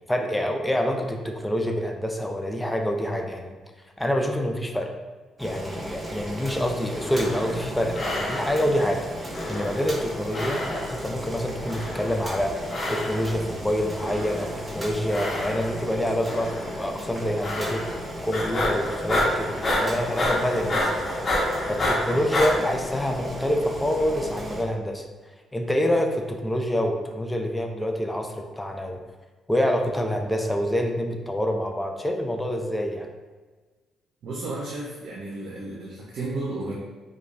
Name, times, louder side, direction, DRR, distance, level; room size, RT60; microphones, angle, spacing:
voice 1, 0.1-3.6 4.0-4.9 5.4-21.1 21.7-25.1 25.5-29.0 29.5-33.1, equal, 10° left, 3 dB, 0.5 m, -27 dB
Boiling, 5.4-24.6, equal, 20° right, 1.1 m, -35 dB
sound 1, 6.9-7.7 7.9-8.8 9.3-10.1 10.3-11.1 11.6-12.3 12.7-13.4 13.9-14.6 15.1-15.9 16.3-16.7 17.4-18.0 18.3-22.5, left 1 dB, 35° left, 1.0 m, -29 dB
voice 2, 34.2-36.7, right 2 dB, 70° right, -4 dB, 0.7 m, -33 dB
5.1 x 2.3 x 2.5 m, 1.3 s
cardioid pair, 90°, 0 cm